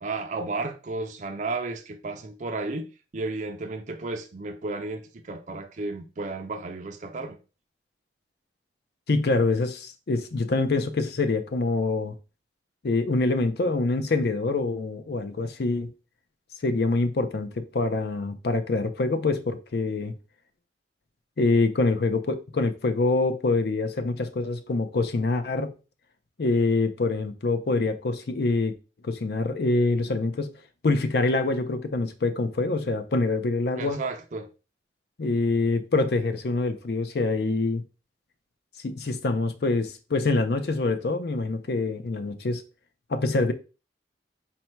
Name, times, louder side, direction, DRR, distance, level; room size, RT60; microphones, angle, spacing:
voice 1, 0.0-7.4 33.7-34.5, right 3 dB, 45° right, 0.4 m, -33 dB
voice 2, 9.1-12.1 12.8-15.9 16.6-20.1 21.4-25.7 26.4-28.7 29.0-30.5 30.8-34.0 35.2-37.8 38.8-42.6 43.1-43.5, left 3 dB, 65° left, 0.5 m, -25 dB
4.2 x 2.2 x 4.4 m
head